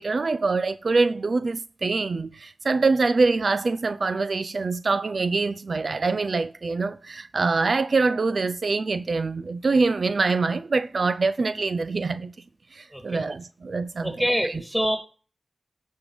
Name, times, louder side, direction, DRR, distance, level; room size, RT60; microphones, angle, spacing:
voice 1, 0.0-12.3 12.7-14.1, right 3 dB, 65° right, 0.4 m, -24 dB
voice 2, 14.0-15.0, equal, 5° right, 2.8 m, -25 dB
9.8 x 5.3 x 5.1 m
cardioid pair, 45°, 0 cm